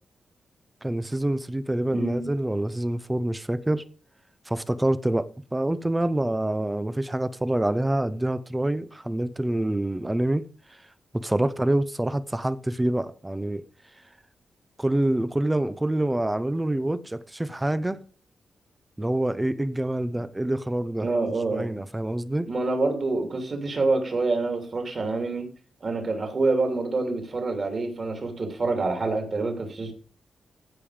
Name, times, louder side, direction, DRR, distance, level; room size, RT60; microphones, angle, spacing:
voice 1, 0.8-3.9 4.5-10.4 11.1-13.6 14.8-18.0 19.0-21.1 21.5-22.5, right 1 dB, 10° right, 0.7 m, -26 dB
voice 2, 1.9-2.3 21.0-21.8 22.4-25.5 25.8-29.9, right 3 dB, 35° right, 3.0 m, -27 dB
16.0 x 5.6 x 5.0 m
wide cardioid pair, 140°, 0 cm